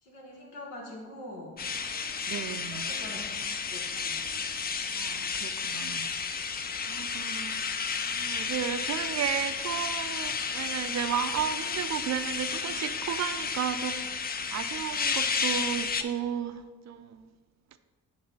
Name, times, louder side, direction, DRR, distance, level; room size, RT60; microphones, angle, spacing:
voice 1, 0.0-1.6 2.5-3.2 3.7-4.3, left 1 dB, 90° left, 1.1 m, -44 dB
sound 1, 1.6-16.0, left 5 dB, 25° left, 0.4 m, -32 dB
voice 2, 2.3-2.9 4.9-6.2 6.9-7.8 8.0-14.2 14.5-17.3, right 9 dB, 40° right, 0.4 m, -34 dB
7.9 x 3.0 x 5.2 m
hypercardioid pair, 45°, 43 cm